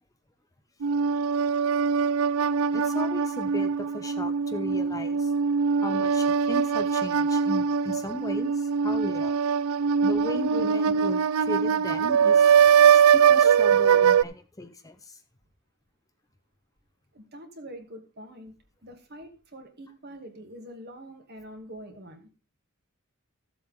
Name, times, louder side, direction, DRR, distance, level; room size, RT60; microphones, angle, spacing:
sound 1, 0.8-14.2, right 7 dB, 75° right, 0.4 m, -22 dB
voice 1, 2.7-5.3 5.8-9.4 10.0-12.5 12.9-15.2, left 1 dB, 15° left, 8 dB, 0.8 m, -36 dB
voice 2, 17.1-18.5 18.8-22.3, equal, 50° right, 4 dB, 2.3 m, -44 dB
14.5 x 7.7 x 3.7 m, 0.33 s
head